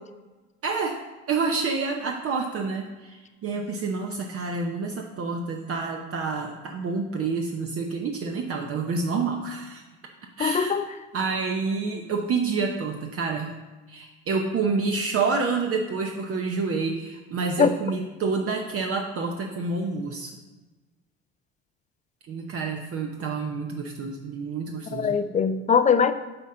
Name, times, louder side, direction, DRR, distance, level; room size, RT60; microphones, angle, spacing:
voice 1, 0.6-1.0 1.3-9.8 10.4-10.8 11.1-13.5 13.9-20.4 22.3-25.2, right 4 dB, 40° right, 2 dB, 0.8 m, -28 dB
voice 2, 10.4-10.9 17.6-17.7 24.9-26.1, left 6 dB, 20° left, 11 dB, 0.4 m, -21 dB
7.7 x 4.2 x 3.8 m, 1.2 s
hypercardioid pair, 70°, 34 cm